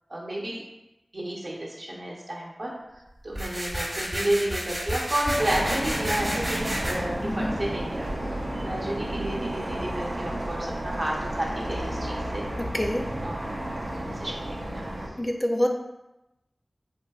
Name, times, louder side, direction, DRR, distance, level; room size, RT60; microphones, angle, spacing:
voice 1, 0.1-0.6 1.1-2.7 3.2-12.4 13.2-13.4 13.9-14.9, right 1 dB, 60° right, -4 dB, 0.8 m, -31 dB
sound 1, 3.3-6.9, equal, 30° right, 0.8 m, -31 dB
sound 2, 5.3-15.1, right 1 dB, 85° right, 0.5 m, -32 dB
Water / Sink (filling or washing), 5.6-7.4, equal, 80° left, 0.6 m, -44 dB
voice 2, 7.2-7.6 12.6-13.0 15.2-15.7, left 1 dB, 25° left, 2 dB, 0.3 m, -26 dB
3.7 x 2.7 x 2.3 m, 0.94 s
wide cardioid pair, 50°, 0 cm